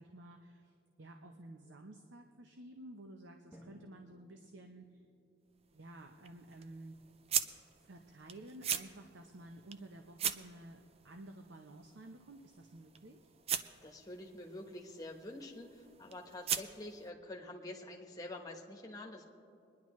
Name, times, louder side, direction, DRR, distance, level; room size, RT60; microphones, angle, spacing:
voice 1, 0.0-5.0 5.7-7.0 7.8-13.3, right 1 dB, 65° right, 4 dB, 0.7 m, -52 dB
Drum, 3.5-6.0, equal, 10° right, 1.1 m, -61 dB
sound 1, 5.5-17.1, right 8 dB, 30° right, 0.4 m, -42 dB
voice 2, 13.8-19.2, left 1 dB, 20° left, 1 dB, 1.1 m, -47 dB
23.5 x 10.5 x 3.1 m, 2.5 s
head